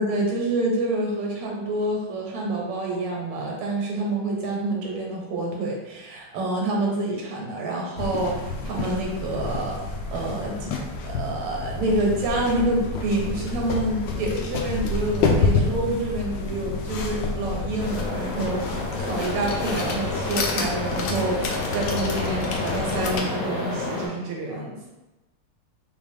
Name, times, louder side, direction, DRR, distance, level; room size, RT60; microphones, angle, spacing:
voice 1, 0.0-9.8 10.1-10.7 11.0-18.7 19.0-24.8, right 2 dB, 85° right, -1 dB, 1.9 m, -27 dB
sound 1, 8.0-23.2, left 4 dB, 75° left, 1.0 m, -29 dB
sound 2, 17.8-24.1, left 2 dB, 55° left, 1.9 m, -30 dB
3.8 x 3.5 x 3.4 m, 1.0 s
omnidirectional pair, 2.4 m